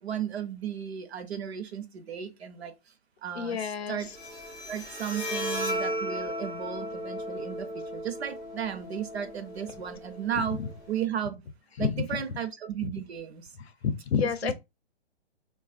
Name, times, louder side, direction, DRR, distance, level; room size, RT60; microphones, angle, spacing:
voice 1, 0.0-2.7 3.2-4.1 4.7-10.6 10.9-11.4 11.8-13.5 14.2-14.5, right 9 dB, 65° right, 0.7 m, -34 dB
voice 2, 3.3-4.0 10.4-10.7 11.8-12.0 12.8-12.9 13.8-14.5, left 6 dB, 65° left, 0.6 m, -29 dB
Bowed string instrument, 4.0-11.0, equal, 5° right, 0.5 m, -36 dB
3.3 x 2.3 x 2.4 m
hypercardioid pair, 160°, 34 cm